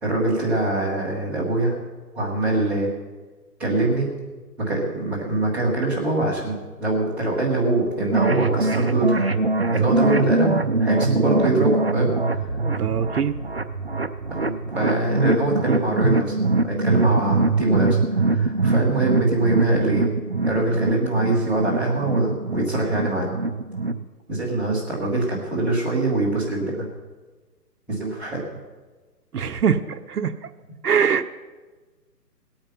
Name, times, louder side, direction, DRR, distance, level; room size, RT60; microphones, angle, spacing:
voice 1, 0.0-1.8 2.1-2.9 3.6-4.1 4.6-9.3 9.7-12.5 14.3-16.4 16.6-20.1 20.5-23.3 24.3-26.9 27.9-28.4, right 2 dB, 5° right, -8 dB, 0.9 m, -23 dB
sound 1, 8.1-24.0, right 3 dB, 40° right, 0.4 m, -23 dB
voice 2, 12.6-13.4 29.3-30.3 30.8-31.3, right 7 dB, 65° right, 11 dB, 0.9 m, -22 dB
18.0 x 8.8 x 5.7 m, 1.3 s
hypercardioid pair, 160°, 50 cm